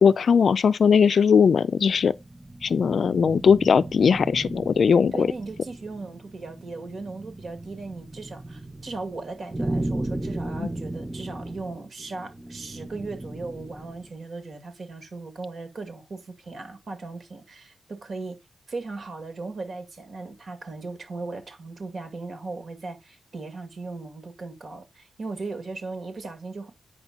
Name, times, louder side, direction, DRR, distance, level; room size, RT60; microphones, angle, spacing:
voice 1, 0.0-2.1 2.6-5.3, left 6 dB, 55° left, 0.4 m, -19 dB
sound 1, 1.8-14.1, right 1 dB, 5° right, 0.6 m, -36 dB
voice 2, 5.1-18.4 18.7-26.7, right 3 dB, 50° right, 2.2 m, -37 dB
8.8 x 5.8 x 4.0 m
wide cardioid pair, 150°, 0 cm